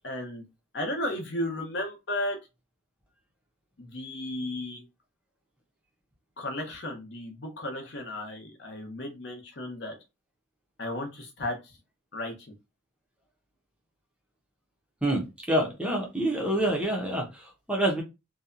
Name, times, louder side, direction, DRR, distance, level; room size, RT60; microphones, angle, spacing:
voice 1, 0.0-0.4 0.7-2.4 3.8-4.8 6.4-10.0 10.8-11.8 12.1-12.5, left 1 dB, 55° left, 0.7 m, -34 dB
voice 2, 15.0-18.0, right 1 dB, 5° right, 0.5 m, -27 dB
2.7 x 2.1 x 2.4 m
head